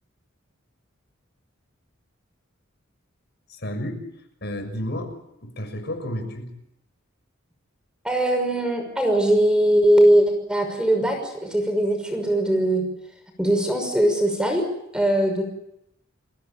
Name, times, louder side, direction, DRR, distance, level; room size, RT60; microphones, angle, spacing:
voice 1, 3.5-4.0 4.4-5.1 5.4-6.5, equal, 55° left, 6 dB, 6.6 m, -31 dB
voice 2, 8.0-12.9 13.4-14.6 14.9-15.4, right 1 dB, 5° right, 4 dB, 6.0 m, -20 dB
29.0 x 16.5 x 9.0 m, 0.81 s
head